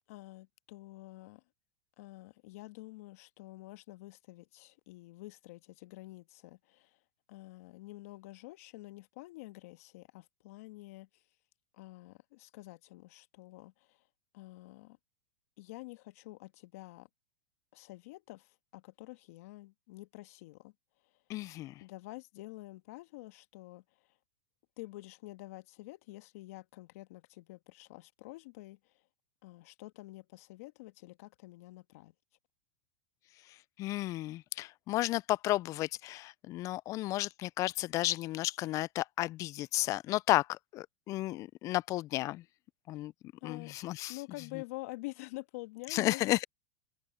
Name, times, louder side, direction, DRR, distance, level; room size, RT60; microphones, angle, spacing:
voice 1, 0.1-1.4 2.0-7.0 7.3-11.2 11.7-14.0 14.3-15.0 15.6-17.1 17.7-20.7 21.8-24.2 24.8-29.0 29.4-32.1 43.4-43.8 44.1-46.4, left 21 dB, 65° left, 1.7 m, -48 dB
voice 2, 21.3-21.7 33.8-42.4 42.9-43.1 43.4-44.2 45.9-46.4, left 17 dB, 40° left, 0.4 m, -33 dB
hypercardioid pair, 115°, 9 cm